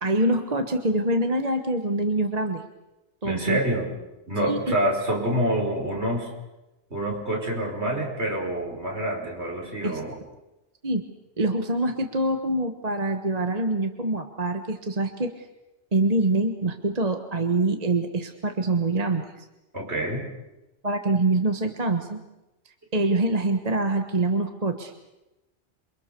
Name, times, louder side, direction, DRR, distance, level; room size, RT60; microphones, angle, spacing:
voice 1, 0.0-2.6 3.2-3.6 4.5-4.6 9.8-10.0 10.8-11.0 11.4-15.5 15.9-19.4 20.8-22.2 22.9-24.9, right 2 dB, 35° right, 6 dB, 1.4 m, -25 dB
voice 2, 3.2-3.9 4.3-6.3 6.9-10.2 19.7-20.3, right 1 dB, 65° right, 0 dB, 5.8 m, -27 dB
28.5 x 24.0 x 6.9 m, 0.99 s
omnidirectional pair, 1.2 m